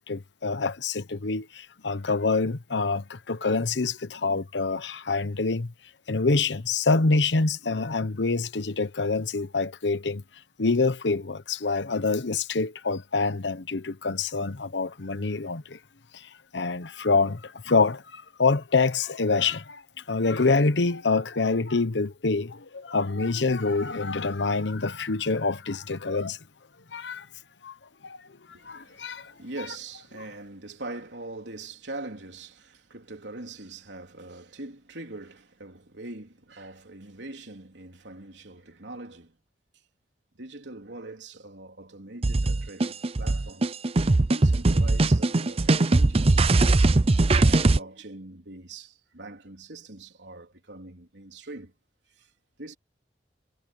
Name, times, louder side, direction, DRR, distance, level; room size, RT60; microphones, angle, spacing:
voice 1, 0.1-5.7 6.1-10.2 10.6-15.8 16.5-19.8 20.1-26.4 26.9-27.3 27.6-27.7 28.0-28.2 28.6-29.3, left 3 dB, 90° left, 1.0 m, -26 dB
voice 2, 28.5-39.4 40.4-43.8 44.3-46.7 47.3-51.7 52.1-52.3 52.6-52.8, right 2 dB, 85° right, 3.4 m, -42 dB
sound 1, 42.2-47.8, right 2 dB, 35° right, 0.6 m, -20 dB
head